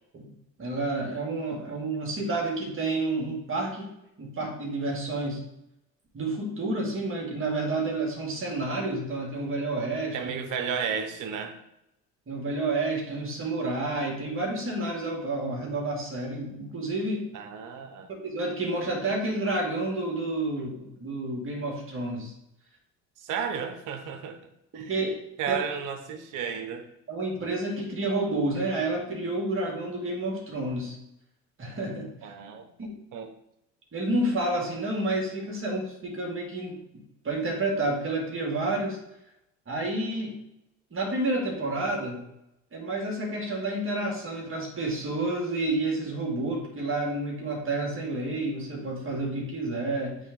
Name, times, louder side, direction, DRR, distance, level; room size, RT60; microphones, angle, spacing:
voice 1, 0.6-3.9 4.2-5.4 6.1-10.3 12.3-17.3 18.1-22.3 24.7-25.2 25.5-25.6 27.1-31.0 31.6-32.3 32.8-33.0 33.9-36.8 37.2-39.0 39.7-40.4 40.9-42.2 42.7-50.2, right 2 dB, 35° right, 0 dB, 1.9 m, -30 dB
voice 2, 10.1-11.6 17.3-18.1 23.2-24.4 24.7-24.9 25.4-26.9 32.2-32.7 33.1-33.3, right 7 dB, 60° right, 8 dB, 1.0 m, -33 dB
8.1 x 3.4 x 3.7 m, 0.83 s
hypercardioid pair, 65°, 36 cm